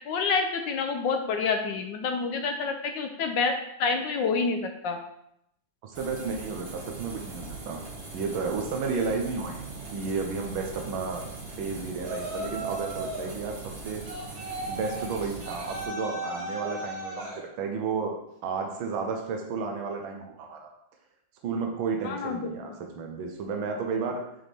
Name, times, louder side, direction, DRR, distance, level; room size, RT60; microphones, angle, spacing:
voice 1, 0.0-5.0 22.0-22.5, left 4 dB, 75° left, 5 dB, 1.2 m, -28 dB
voice 2, 5.8-7.8 8.1-9.6 9.9-14.0 14.7-18.1 18.4-20.7 21.4-24.2, right 4 dB, 80° right, 2 dB, 1.6 m, -32 dB
sound 1, 5.9-15.8, right 3 dB, 35° right, 1.2 m, -41 dB
Yell, 12.0-13.4 14.0-17.4, right 2 dB, 50° right, 1.5 m, -36 dB
7.7 x 4.1 x 3.5 m, 0.77 s
omnidirectional pair, 2.2 m